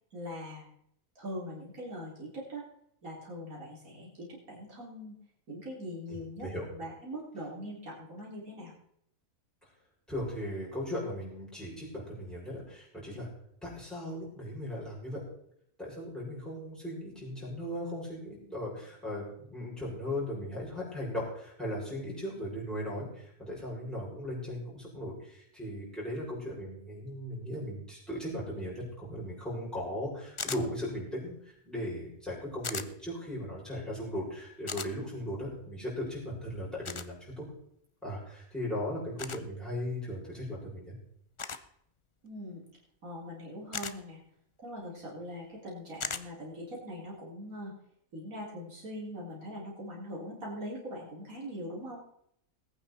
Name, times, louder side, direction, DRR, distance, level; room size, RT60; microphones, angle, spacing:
voice 1, 0.1-0.7 1.2-2.6 3.0-5.2 5.5-8.7 42.2-42.6 43.0-44.2 44.6-47.7 48.1-52.0, equal, 70° right, -5 dB, 4.2 m, -42 dB
voice 2, 6.1-6.6 10.1-13.3 13.6-15.2 15.8-37.5 38.0-40.9, left 1 dB, ahead, -7 dB, 7.0 m, -37 dB
sound 1, 30.4-30.6 32.6-32.9 34.7-34.9 36.8-37.1 39.2-39.4 41.4-41.7 43.7-44.0 46.0-46.2, left 5 dB, 45° left, 0.4 m, -36 dB
20.5 x 9.2 x 4.3 m, 0.71 s
omnidirectional pair, 1.5 m